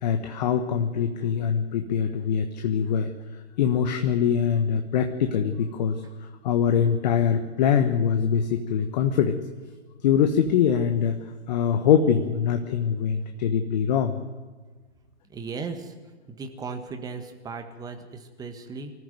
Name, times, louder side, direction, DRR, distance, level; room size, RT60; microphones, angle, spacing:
voice 1, 0.0-3.1 3.6-6.0 6.4-9.4 10.0-11.2 11.5-14.1, left 8 dB, 40° left, 6 dB, 1.3 m, -23 dB
voice 2, 15.3-15.9 16.3-18.9, right 4 dB, 10° right, 6 dB, 1.6 m, -36 dB
24.5 x 14.5 x 7.8 m, 1.4 s
figure-of-eight pair, 125°, 35 cm